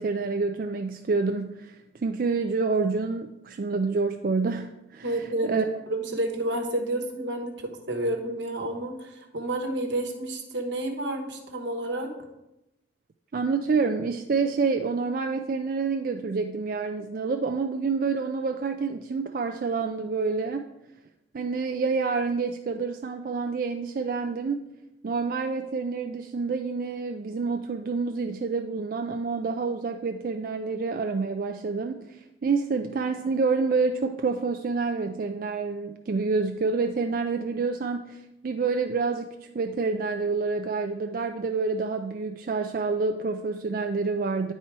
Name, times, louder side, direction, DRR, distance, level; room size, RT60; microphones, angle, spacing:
voice 1, 0.0-5.2 5.4-5.7 13.3-20.6 21.3-24.6 25.0-44.5, right 4 dB, 50° right, 5 dB, 0.4 m, -28 dB
voice 2, 5.0-12.1, right 1 dB, 80° right, 4 dB, 1.2 m, -30 dB
9.8 x 4.3 x 4.6 m, 0.91 s
head